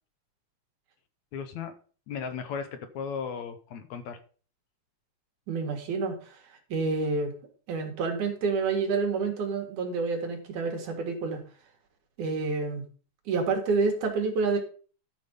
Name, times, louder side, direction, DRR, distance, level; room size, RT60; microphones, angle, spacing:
voice 1, 1.3-1.7 2.1-4.2, left 6 dB, 70° left, 8 dB, 2.3 m, -36 dB
voice 2, 5.5-6.4 6.7-7.3 7.7-11.4 12.2-12.8 13.3-14.6, right 4 dB, 80° right, 3 dB, 3.3 m, -28 dB
12.0 x 5.2 x 5.4 m, 0.40 s
omnidirectional pair, 3.5 m